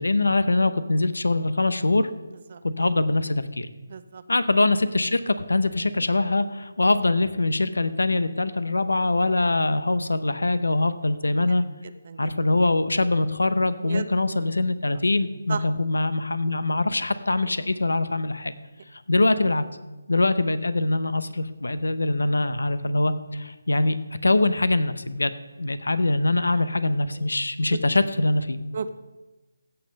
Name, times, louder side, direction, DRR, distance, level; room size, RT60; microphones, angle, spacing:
voice 1, 0.0-2.1 2.6-3.7 4.3-11.6 12.2-18.5 19.1-19.6 20.1-24.0 24.2-28.6, left 2 dB, 90° left, 13 dB, 0.8 m, -23 dB
voice 2, 3.9-4.2 11.5-11.6 11.8-12.3 13.8-14.1 14.9-15.0 15.5-15.6 27.1-27.3 28.7-28.9, right 5 dB, 45° right, 12 dB, 0.7 m, -34 dB
15.5 x 5.7 x 5.2 m, 1.1 s
figure-of-eight pair, 160°, 0 cm